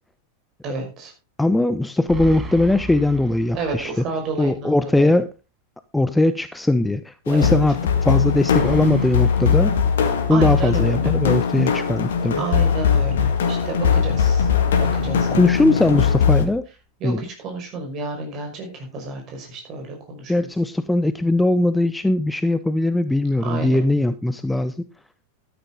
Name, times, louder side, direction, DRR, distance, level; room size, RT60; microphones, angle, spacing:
voice 1, 0.6-1.1 3.5-5.1 7.3-7.5 10.3-11.1 12.4-14.5 14.8-16.0 17.0-20.5 23.4-23.8, right 3 dB, 35° right, 2 dB, 5.7 m, -31 dB
voice 2, 1.4-3.9 4.4-5.3 5.9-9.7 10.3-12.4 15.4-16.6 17.0-17.2 20.3-24.7, left 2 dB, 5° left, 13 dB, 0.6 m, -20 dB
sound 1, 2.1-4.1 4.4-4.5 8.5-10.5 14.4-16.3, left 2 dB, 20° right, 2.1 m, -34 dB
sound 2, 7.3-16.5, left 7 dB, 60° left, 2.0 m, -20 dB
13.0 x 10.5 x 3.9 m, 0.29 s
figure-of-eight pair, 90°, 0 cm